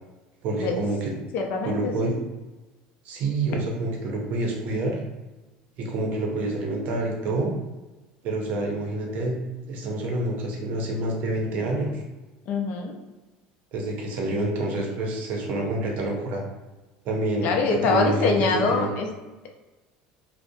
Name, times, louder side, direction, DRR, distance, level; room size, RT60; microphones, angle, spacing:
voice 1, 0.4-1.1 1.6-2.2 3.0-5.0 5.8-7.5 8.2-9.4 9.7-12.0 13.7-16.4 17.0-18.9, right 2 dB, 55° right, 0 dB, 0.6 m, -27 dB
voice 2, 1.3-2.2 12.5-13.0 17.4-19.1, left 4 dB, 60° left, 2 dB, 0.4 m, -24 dB
2.5 x 2.1 x 2.6 m, 1.1 s
supercardioid pair, 125°, 3 cm